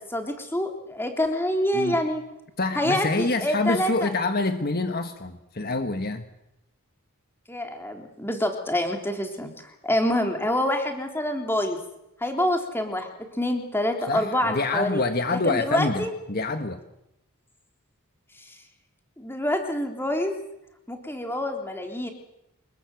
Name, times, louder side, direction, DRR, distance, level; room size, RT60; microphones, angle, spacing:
voice 1, 0.0-2.2 2.8-4.1 7.5-11.8 12.2-13.1 13.3-15.0 15.4-16.1 18.5-18.6 19.2-20.4 20.9-22.1, left 1 dB, 10° left, 4 dB, 3.6 m, -26 dB
voice 2, 2.6-6.3 14.1-16.8, left 3 dB, 45° left, 7 dB, 1.6 m, -26 dB
26.0 x 22.0 x 7.9 m, 0.85 s
head